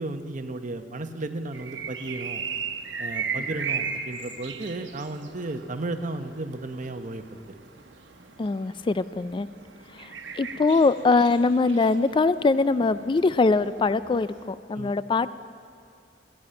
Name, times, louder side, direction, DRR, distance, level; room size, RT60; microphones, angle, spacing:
voice 1, 0.0-2.4 3.0-7.6 14.8-14.9, right 2 dB, 45° right, 8 dB, 0.8 m, -34 dB
sound 1, 1.5-14.5, right 6 dB, 75° right, 1.0 m, -37 dB
voice 2, 8.4-9.5 9.9-15.3, left 3 dB, 25° left, 15 dB, 0.3 m, -23 dB
14.5 x 10.5 x 8.7 m, 2.3 s
head